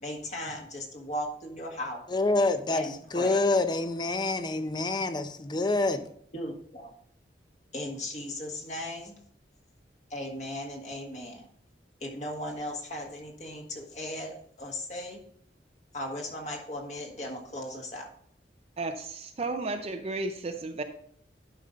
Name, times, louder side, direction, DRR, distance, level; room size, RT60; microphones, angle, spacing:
voice 1, 0.0-2.0 2.7-3.4 6.3-6.9 7.7-9.1 10.1-11.5 12.0-15.2 15.9-18.1, left 1 dB, 40° left, 0 dB, 1.7 m, -37 dB
voice 2, 2.1-6.1, left 2 dB, 25° left, 10 dB, 0.6 m, -27 dB
voice 3, 18.8-20.8, right 3 dB, 35° right, 6 dB, 0.6 m, -33 dB
11.5 x 5.4 x 3.8 m, 0.64 s
head